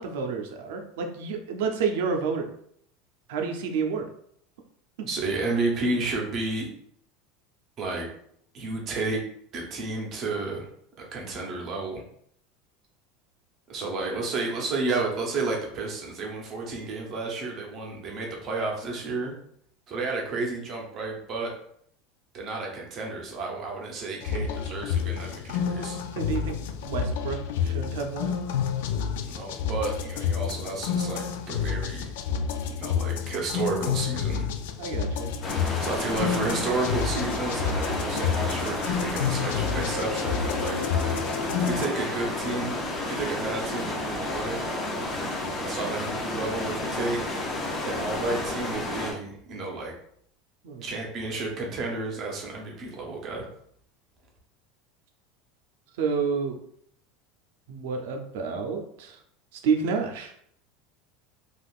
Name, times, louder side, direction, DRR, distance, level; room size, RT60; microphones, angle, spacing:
voice 1, 0.0-2.5 3.3-4.1 5.0-5.1 26.1-28.3 34.8-35.3 50.6-50.8 56.0-56.6 57.7-59.2 59.5-60.3, right 5 dB, 70° right, 4 dB, 0.5 m, -29 dB
voice 2, 5.1-6.7 7.8-8.1 8.5-9.2 9.5-10.7 11.0-12.0 13.7-19.3 19.9-21.5 22.3-26.0 29.2-32.1 32.8-34.5 35.8-40.8 41.6-44.6 45.6-47.2 47.8-49.9 50.8-53.5, right 3 dB, 30° right, -1 dB, 0.7 m, -31 dB
sound 1, 24.2-41.9, left 7 dB, 80° left, 0.3 m, -29 dB
sound 2, 35.4-49.1, left 2 dB, 20° left, 0.6 m, -31 dB
3.5 x 2.4 x 2.4 m, 0.67 s
supercardioid pair, 180°, 0 cm